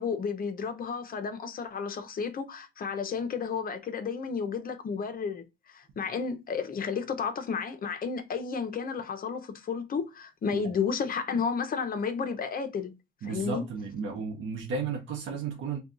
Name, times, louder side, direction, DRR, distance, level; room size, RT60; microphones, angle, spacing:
voice 1, 0.0-12.9 13.2-13.6, left 5 dB, 45° left, 0.7 m, -32 dB
voice 2, 13.2-15.8, right 5 dB, 80° right, 0.8 m, -33 dB
2.7 x 2.3 x 3.6 m
cardioid pair, 90°, 20 cm